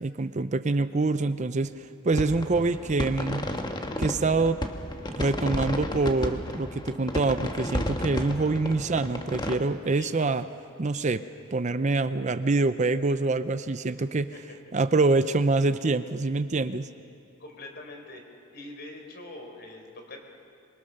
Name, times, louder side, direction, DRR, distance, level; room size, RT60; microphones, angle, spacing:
voice 1, 0.0-1.7 2.0-3.4 4.0-4.6 5.2-10.5 10.8-11.3 11.5-14.3 14.7-16.9, right 3 dB, 35° right, 12 dB, 0.5 m, -25 dB
sound 1, 2.1-9.6, left 1 dB, 20° left, 1.3 m, -33 dB
voice 2, 8.2-8.6 10.0-10.1 14.3-14.4 17.4-18.2 18.5-20.2, left 2 dB, 50° left, 3 dB, 4.0 m, -43 dB
26.5 x 23.5 x 6.6 m, 2.4 s
head